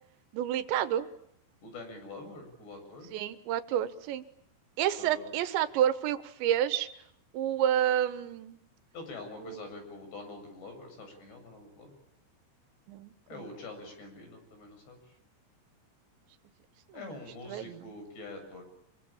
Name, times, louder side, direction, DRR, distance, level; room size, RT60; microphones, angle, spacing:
voice 1, 0.3-1.1 3.1-4.3 4.8-6.9 7.3-8.6 9.4-9.7 12.9-13.4 16.9-17.1 17.5-17.9, right 11 dB, 80° right, 11 dB, 3.7 m, -29 dB
voice 2, 1.6-3.1 5.0-5.3 8.9-12.0 13.3-15.1 16.9-18.6, left 2 dB, 65° left, 6 dB, 9.5 m, -45 dB
28.0 x 24.0 x 8.9 m, 0.71 s
omnidirectional pair, 5.2 m